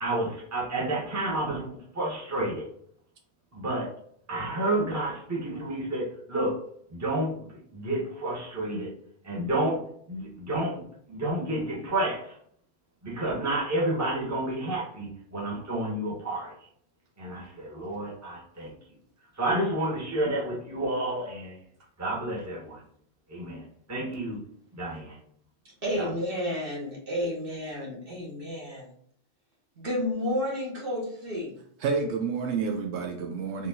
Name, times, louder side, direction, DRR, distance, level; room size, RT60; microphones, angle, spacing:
voice 1, 0.0-2.7 3.5-3.9 4.3-6.6 6.9-7.4 7.7-8.9 9.2-9.8 10.1-12.4 13.0-16.5 17.2-18.7 19.4-21.5 22.0-22.8 23.3-23.6 23.9-24.4 24.7-25.2 26.0-26.1, right 1 dB, 15° right, 0.9 m, -30 dB
voice 2, 25.8-28.9 29.8-31.5, left 1 dB, 55° right, 1.8 m, -31 dB
voice 3, 31.8-33.7, right 5 dB, 85° right, 0.9 m, -29 dB
4.1 x 3.4 x 2.7 m
omnidirectional pair, 1.1 m